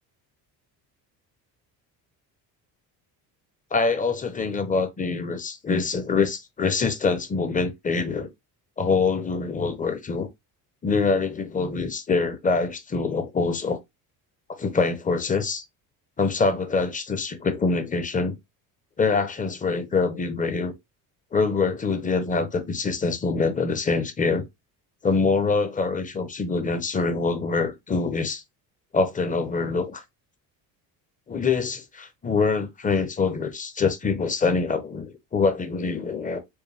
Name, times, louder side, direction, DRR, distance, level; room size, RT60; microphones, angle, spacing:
voice 1, 3.7-8.3 8.8-10.3 10.8-13.8 14.6-15.7 16.2-18.4 19.0-20.7 21.3-24.5 25.0-28.4 28.9-30.0 31.3-36.4, left 4 dB, 20° left, 0.8 m, -25 dB
4.7 x 2.5 x 3.3 m
cardioid pair, 130°, 39 cm